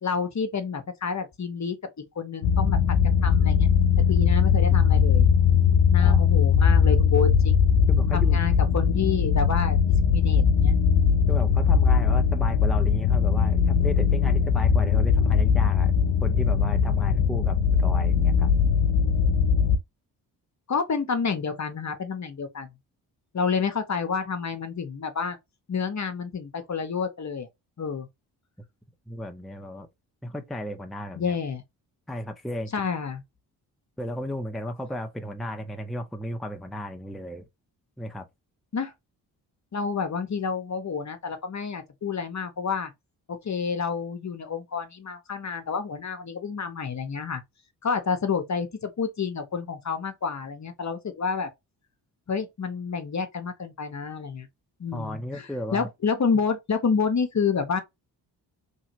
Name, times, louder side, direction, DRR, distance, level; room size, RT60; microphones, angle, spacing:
voice 1, 0.0-2.8 3.0-3.7 4.1-5.3 5.9-7.7 8.1-9.8 10.1-10.7 20.7-22.7 23.3-25.4 25.7-27.5 27.8-28.1 31.2-31.6 32.7-33.2 38.7-38.9 39.7-42.9 43.3-47.4 47.8-51.5 52.3-54.5 54.8-57.8, left 5 dB, 35° left, 0.9 m, -29 dB
sound 1, 2.4-19.8, left 7 dB, 70° left, 0.7 m, -20 dB
voice 2, 7.9-8.4 11.3-15.9 16.2-18.5 29.1-29.9 30.2-31.4 32.1-32.7 34.0-37.4 38.0-38.3 54.9-55.9, left 1 dB, ahead, 0.7 m, -34 dB
3.0 x 2.8 x 2.7 m
hypercardioid pair, 45°, 47 cm